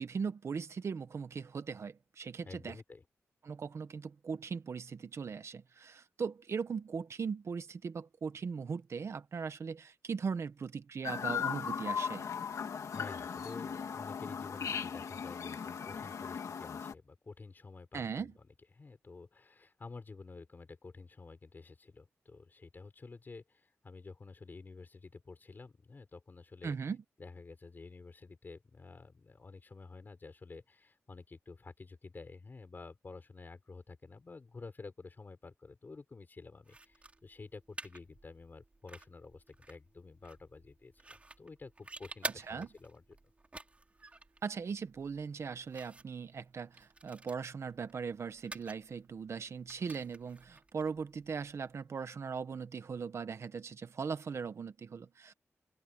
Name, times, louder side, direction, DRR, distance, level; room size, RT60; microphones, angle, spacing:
voice 1, 0.0-2.8 3.4-12.2 17.9-18.3 26.6-27.0 42.2-42.7 44.4-55.3, right 5 dB, 60° right, 1.3 m, -39 dB
voice 2, 2.4-3.0 12.9-18.3 18.8-26.8 27.2-43.2, left 3 dB, 35° left, 5.7 m, -51 dB
Chirp tweet, 11.0-16.9, left 7 dB, 80° left, 2.1 m, -38 dB
sound 1, 36.6-51.8, right 2 dB, 25° right, 4.9 m, -50 dB
open air
wide cardioid pair, 140°, 5 cm